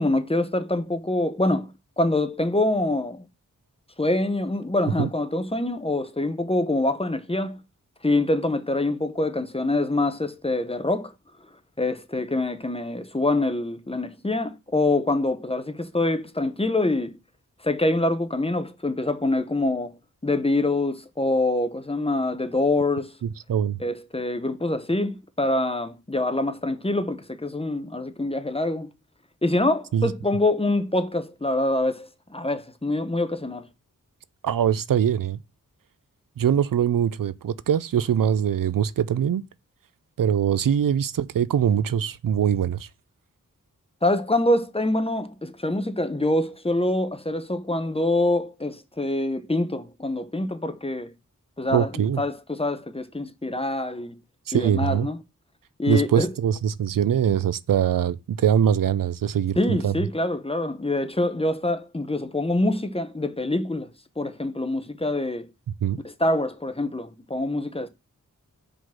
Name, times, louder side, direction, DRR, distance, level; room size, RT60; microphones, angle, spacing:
voice 1, 0.0-1.7 2.0-3.3 4.0-7.6 8.0-11.1 11.8-17.1 17.6-20.0 20.2-23.1 23.8-28.9 29.4-33.7 44.0-51.1 51.6-51.9 52.2-54.2 54.5-55.2 55.8-56.3 59.6-63.9 64.2-65.5 66.2-67.9, left 2 dB, 15° left, 0.9 m, -25 dB
voice 2, 23.2-23.8 29.9-30.1 34.4-35.4 36.4-39.4 40.2-42.9 51.7-52.2 54.5-55.1 55.9-59.9 65.8-66.0, right 9 dB, 80° right, 0.5 m, -23 dB
5.0 x 4.0 x 5.8 m
wide cardioid pair, 55°, 33 cm